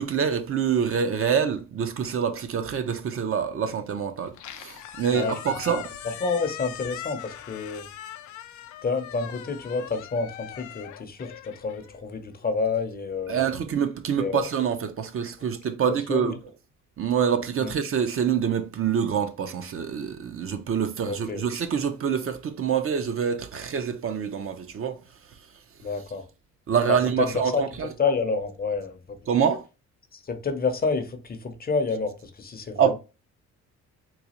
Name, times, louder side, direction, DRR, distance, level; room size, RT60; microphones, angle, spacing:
voice 1, 0.0-5.8 13.3-16.4 17.0-25.0 26.7-27.9 29.3-29.6 32.8-32.9, right 7 dB, 45° right, 0.6 m, -26 dB
Squeak, 4.2-12.5, left 11 dB, 75° left, 0.5 m, -41 dB
voice 2, 5.7-7.9 8.8-13.4 14.2-14.4 16.1-16.4 17.6-17.7 21.1-21.4 25.8-26.2 26.9-27.7 28.0-29.2 30.1-32.9, left 4 dB, 30° left, 0.6 m, -29 dB
3.9 x 2.3 x 2.9 m
cardioid pair, 90°, 30 cm